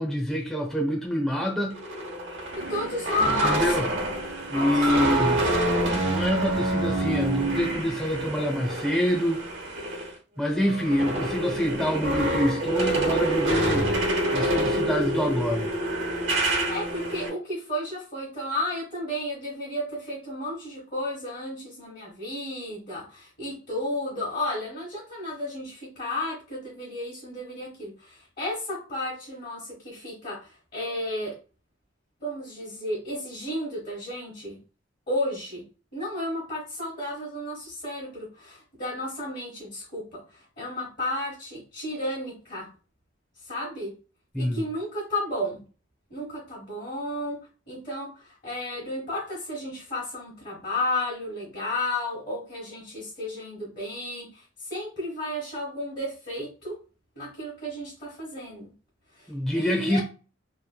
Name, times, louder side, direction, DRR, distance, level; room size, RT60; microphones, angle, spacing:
voice 1, 0.0-1.8 3.4-3.9 4.5-5.4 6.0-9.4 10.4-14.0 14.3-15.7 44.3-44.6 59.3-60.0, equal, 5° left, 0.7 m, -26 dB
sound 1, 1.7-10.1 10.4-17.3, right 1 dB, 70° right, 0.9 m, -27 dB
voice 2, 2.5-3.8 4.5-5.4 16.7-31.4 32.2-34.6 35.1-35.6 35.9-42.7 43.4-43.9 44.4-45.6 46.1-47.4 47.7-56.8 57.1-58.7 59.2-60.0, left 1 dB, 45° left, 1.3 m, -33 dB
3.1 x 2.1 x 2.2 m
head